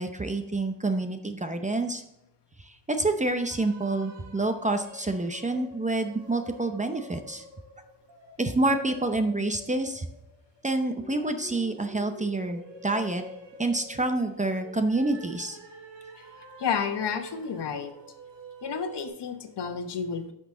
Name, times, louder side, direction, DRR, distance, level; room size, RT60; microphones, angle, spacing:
voice 1, 0.0-2.0 2.9-7.4 8.4-10.0 10.6-13.2 13.6-15.6, right 2 dB, 15° right, 7 dB, 0.6 m, -28 dB
sound 1, 3.2-19.1, right 2 dB, 85° right, 2.1 m, -47 dB
voice 2, 16.6-17.9 18.6-20.3, left 6 dB, 70° left, 6 dB, 1.2 m, -31 dB
10.5 x 6.2 x 3.7 m, 0.90 s
wide cardioid pair, 165°, 43 cm